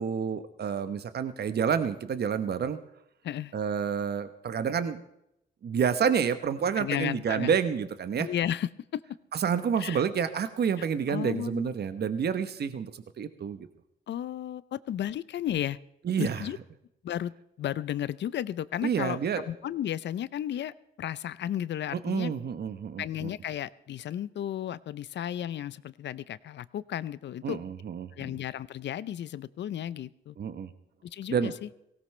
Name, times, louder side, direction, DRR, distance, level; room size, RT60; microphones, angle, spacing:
voice 1, 0.0-2.8 3.5-5.0 5.6-8.3 9.3-13.7 16.0-16.4 18.8-19.4 22.0-23.3 27.4-28.1 30.4-30.7 31.3-31.5, right 7 dB, 55° right, 11 dB, 1.0 m, -29 dB
voice 2, 6.8-7.6 8.2-9.0 9.8-10.0 10.8-11.7 14.1-15.8 16.2-16.6 17.0-17.3 17.6-19.2 19.5-22.3 23.0-27.6 28.1-30.4 31.1-31.7, left 11 dB, 65° left, 18 dB, 0.6 m, -34 dB
18.0 x 17.0 x 3.3 m, 0.79 s
supercardioid pair, 65°, 20 cm